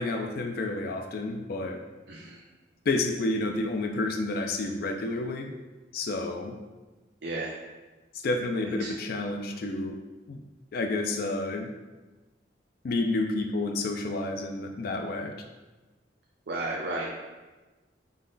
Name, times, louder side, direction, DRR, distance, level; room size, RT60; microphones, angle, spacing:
voice 1, 0.0-1.8 2.9-5.5 5.9-6.6 8.2-10.0 10.3-10.4 10.7-11.7 12.8-15.3, left 2 dB, 55° left, 4 dB, 0.4 m, -30 dB
voice 2, 7.2-7.6 8.8-8.9 16.5-17.1, right 2 dB, 60° right, -2 dB, 0.5 m, -33 dB
3.8 x 3.2 x 3.9 m, 1.2 s
head